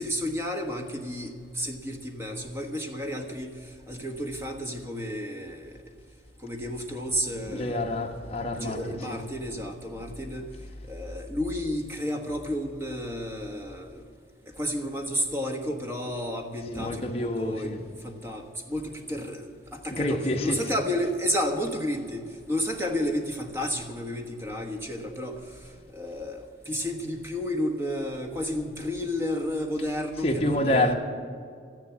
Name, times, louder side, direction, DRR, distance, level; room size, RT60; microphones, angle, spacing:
voice 1, 0.0-5.8 6.4-7.8 8.5-10.5 10.9-14.1 14.5-25.4 25.9-30.9, equal, 15° right, 1.3 m, -32 dB
voice 2, 7.4-9.3 16.7-17.9 19.9-20.7 30.2-30.9, left 1 dB, 35° left, 1.2 m, -28 dB
13.5 x 10.5 x 8.2 m
head